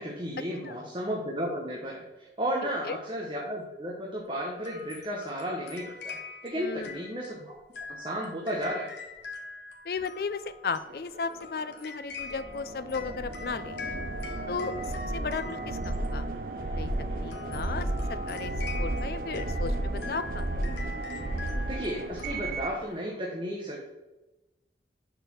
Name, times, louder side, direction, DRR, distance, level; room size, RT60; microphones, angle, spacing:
voice 1, 0.0-6.2 6.4-7.6 7.9-8.9 21.7-23.8, equal, 30° right, -2 dB, 1.0 m, -33 dB
sound 1, 4.6-16.6 17.2-22.5, left 4 dB, 80° left, 1.1 m, -44 dB
voice 2, 6.6-6.9 9.8-13.8 14.5-16.2 16.7-16.9 17.2-18.5 18.8-20.5, left 5 dB, 55° left, 12 dB, 0.4 m, -35 dB
sound 2, 10.0-23.3, equal, 75° right, 2.2 m, -54 dB
sound 3, 12.2-22.8, right 1 dB, 50° right, 0.6 m, -33 dB
6.6 x 4.0 x 6.2 m, 1.1 s
head